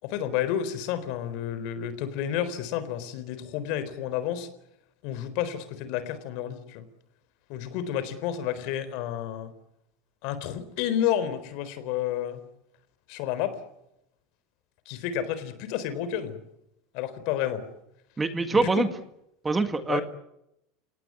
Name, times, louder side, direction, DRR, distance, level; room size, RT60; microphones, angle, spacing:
voice 1, 0.0-4.5 5.0-6.9 7.5-9.5 10.2-12.4 13.1-13.6 14.9-16.4 16.9-17.6 18.6-18.9 19.9-20.0, left 10 dB, 60° left, 13 dB, 4.0 m, -30 dB
voice 2, 18.2-18.9 19.4-20.0, right 3 dB, 15° right, 8 dB, 2.0 m, -24 dB
29.0 x 18.5 x 9.7 m, 0.84 s
supercardioid pair, 145°, 0 cm